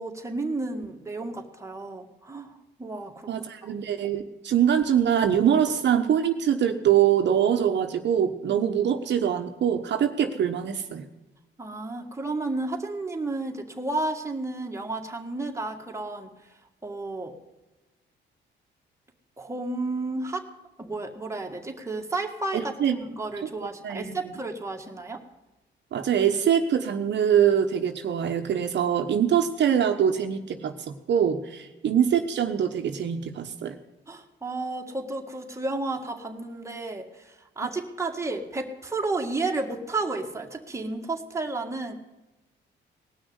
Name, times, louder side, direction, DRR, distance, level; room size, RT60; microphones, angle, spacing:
voice 1, 0.0-3.3 3.6-3.7 11.6-16.3 16.8-17.4 19.4-20.5 20.8-25.2 34.1-42.0, right 2 dB, 15° right, 2 dB, 1.9 m, -32 dB
voice 2, 3.3-11.1 22.5-22.9 23.8-24.3 25.9-30.7 31.1-33.8, right 9 dB, 60° right, 6 dB, 1.2 m, -23 dB
18.5 x 6.3 x 9.7 m, 1.1 s
cardioid pair, 90°, 20 cm